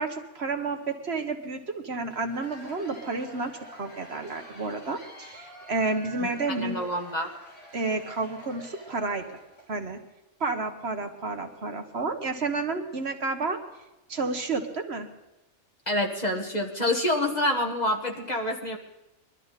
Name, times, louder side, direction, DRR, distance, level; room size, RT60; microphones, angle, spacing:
voice 1, 0.0-6.8 7.7-9.4 9.7-10.0 10.4-13.6 14.1-15.1, right 3 dB, 55° right, 5 dB, 1.4 m, -31 dB
Cheering / Applause / Crowd, 2.1-9.7, equal, 65° left, 4.0 m, -47 dB
voice 2, 6.6-7.3 15.9-18.8, left 1 dB, 30° left, 2 dB, 1.6 m, -27 dB
22.0 x 13.0 x 4.1 m, 0.96 s
omnidirectional pair, 1.4 m